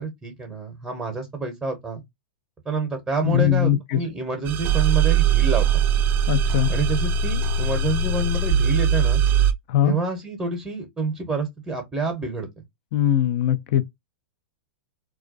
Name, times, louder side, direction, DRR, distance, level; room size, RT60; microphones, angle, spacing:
voice 1, 0.0-2.0 2.6-5.8 6.7-9.2 9.8-12.5, right 3 dB, 10° right, 0.7 m, -28 dB
voice 2, 3.2-4.0 6.3-6.7 9.7-9.9 12.9-13.8, left 11 dB, 55° left, 0.4 m, -20 dB
sound 1, 4.4-9.5, right 7 dB, 30° right, 0.4 m, -20 dB
2.3 x 2.2 x 2.4 m
hypercardioid pair, 120°, 6 cm